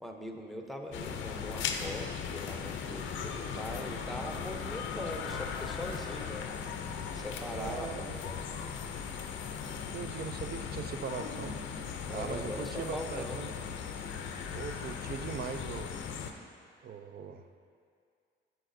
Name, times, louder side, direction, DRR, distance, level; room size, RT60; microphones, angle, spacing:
voice 1, 0.0-6.5 7.1-8.5 12.1-13.4, equal, ahead, 2 dB, 0.7 m, -41 dB
sound 1, 0.9-16.3, left 6 dB, 75° left, 0.6 m, -38 dB
voice 2, 7.5-8.2 9.9-11.5 12.1-13.5 14.5-16.0 16.8-17.4, right 7 dB, 50° right, 9 dB, 0.5 m, -40 dB
8.1 x 7.8 x 2.6 m, 2.3 s
cardioid pair, 90°, 20 cm